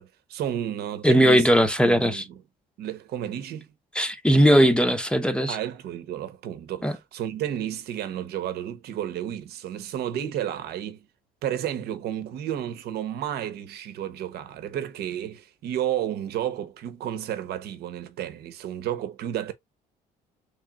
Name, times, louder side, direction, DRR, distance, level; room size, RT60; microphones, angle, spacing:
voice 1, 0.0-1.5 1.8-2.2 2.8-3.7 5.5-11.1 11.4-19.5, right 10 dB, 70° right, 0.9 m, -32 dB
voice 2, 1.0-2.2 4.0-5.6 6.8-6.9, equal, 5° left, 0.6 m, -19 dB
3.4 x 3.0 x 3.5 m
cardioid pair, 110°, 17 cm